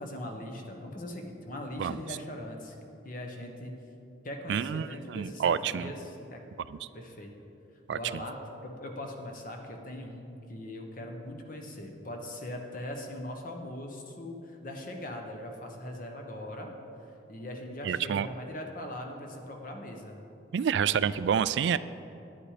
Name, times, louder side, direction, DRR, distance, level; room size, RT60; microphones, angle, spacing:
voice 1, 0.0-2.7 3.0-3.8 4.2-6.4 6.9-7.3 7.9-16.7 17.3-20.2, left 1 dB, 45° left, 3 dB, 1.2 m, -40 dB
voice 2, 4.5-5.9 6.7-6.8 7.9-8.0 17.9-18.3 20.5-21.8, right 7 dB, 65° right, 16 dB, 0.3 m, -28 dB
11.0 x 10.0 x 5.0 m, 2.8 s
head